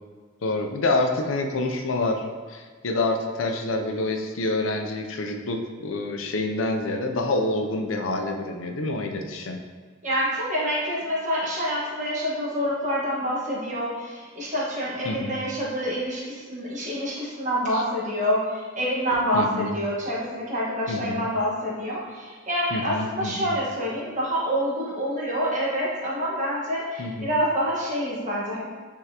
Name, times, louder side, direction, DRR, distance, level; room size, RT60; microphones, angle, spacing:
voice 1, 0.4-9.7 15.0-15.4 17.7-17.8 19.3-19.8 20.9-21.3 22.7-23.5 27.0-27.3, left 2 dB, 90° left, 3 dB, 0.6 m, -27 dB
voice 2, 10.0-28.6, equal, 40° right, -6 dB, 1.5 m, -27 dB
9.6 x 3.6 x 2.9 m, 1.5 s
head